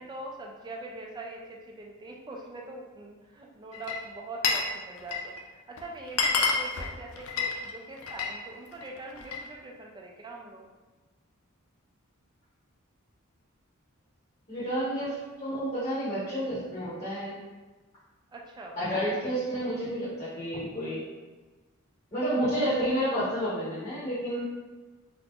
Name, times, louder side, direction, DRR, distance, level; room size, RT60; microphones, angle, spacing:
voice 1, 0.0-10.7 18.3-18.8, right 2 dB, 20° right, 0 dB, 0.4 m, -43 dB
Glass, 3.7-4.7 5.0-5.4 5.8-5.9 6.1-8.4 8.7-9.5, left 4 dB, 70° left, 0.4 m, -28 dB
voice 2, 14.5-17.4 18.8-21.0 22.1-24.4, equal, 30° left, -13 dB, 1.1 m, -30 dB
2.8 x 2.5 x 3.5 m, 1.2 s
head